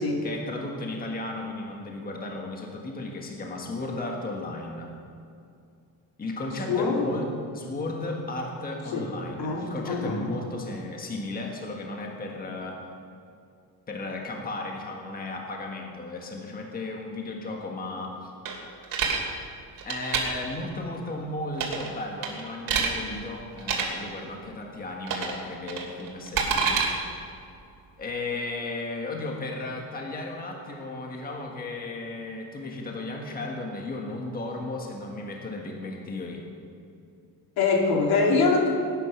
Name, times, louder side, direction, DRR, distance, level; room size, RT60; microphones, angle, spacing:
voice 1, 0.2-4.9 6.2-12.8 13.9-18.3 19.8-26.9 28.0-36.4, left 2 dB, 25° left, 1 dB, 1.5 m, -35 dB
voice 2, 6.7-7.0 8.9-9.1 9.4-10.2 37.6-38.7, left 4 dB, 75° left, 1 dB, 2.7 m, -23 dB
sound 1, 18.5-19.2 19.8-20.2 21.5-21.9 22.2-22.9 23.6-23.8 25.1-25.4 25.7-26.9, right 6 dB, 60° right, 2.8 m, -26 dB
19.0 x 9.9 x 6.1 m, 2.5 s
cardioid pair, 165°, 38 cm